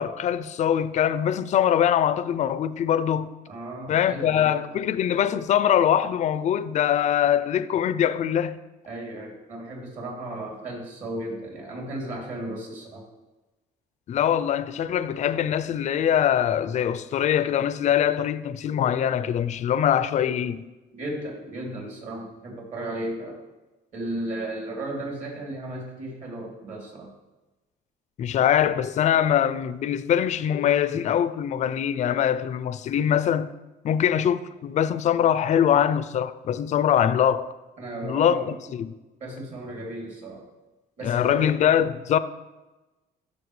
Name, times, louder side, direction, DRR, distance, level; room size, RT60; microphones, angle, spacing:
voice 1, 0.0-3.3 3.9-8.6 14.1-20.7 28.2-33.5 33.8-37.5 38.0-38.9 41.0-42.2, left 9 dB, 45° left, 0.4 m, -23 dB
voice 2, 3.5-4.5 8.9-13.1 20.9-23.4 23.9-27.1 37.8-38.5 39.2-40.4 41.0-41.5, right 1 dB, 45° right, 2.9 m, -35 dB
13.5 x 5.4 x 3.2 m
cardioid pair, 110°, 17 cm